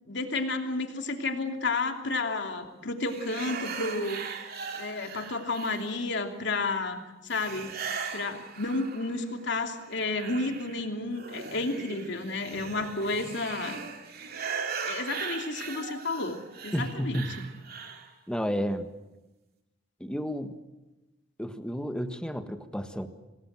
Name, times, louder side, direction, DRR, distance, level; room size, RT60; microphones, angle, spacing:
voice 1, 0.1-4.4 4.8-7.8 8.1-13.8 14.8-17.5, left 3 dB, 65° left, 4 dB, 2.9 m, -31 dB
sound 1, 3.0-6.2 7.3-9.3 9.7-18.1, right 6 dB, 55° right, 2.6 m, -39 dB
voice 2, 16.7-17.3 18.3-18.9 20.0-20.5 21.4-23.1, equal, 5° left, 8 dB, 1.6 m, -31 dB
26.5 x 19.0 x 7.5 m, 1.0 s
head